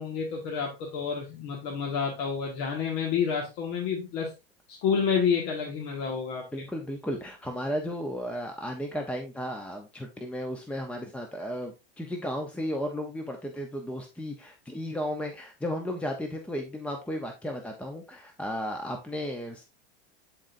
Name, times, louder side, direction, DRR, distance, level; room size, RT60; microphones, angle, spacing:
voice 1, 0.0-4.3 4.7-6.7, left 6 dB, 60° left, 0 dB, 1.7 m, -29 dB
voice 2, 6.5-19.6, equal, 5° left, 3 dB, 0.7 m, -34 dB
11.5 x 4.0 x 2.6 m, 0.26 s
supercardioid pair, 125°, 31 cm